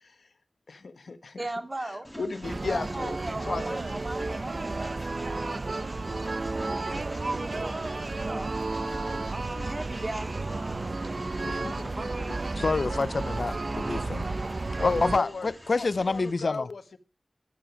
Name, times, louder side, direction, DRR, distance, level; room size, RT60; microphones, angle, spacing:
voice 1, 0.7-1.4 2.2-3.2 3.5-3.8 8.8-9.7 11.5-12.1 14.8-17.0, left 4 dB, 90° left, 1.2 m, -35 dB
voice 2, 1.4-2.3 2.6-8.7 9.6-11.9, right 1 dB, 35° right, 2.5 m, -39 dB
Train, 2.0-16.3, equal, 5° left, 3.5 m, -48 dB
sound 1, 2.4-15.2, right 3 dB, 60° right, 0.9 m, -32 dB
voice 3, 12.6-14.3 14.8-16.7, left 3 dB, 75° left, 0.7 m, -28 dB
15.0 x 11.5 x 6.0 m
wide cardioid pair, 55°, 0 cm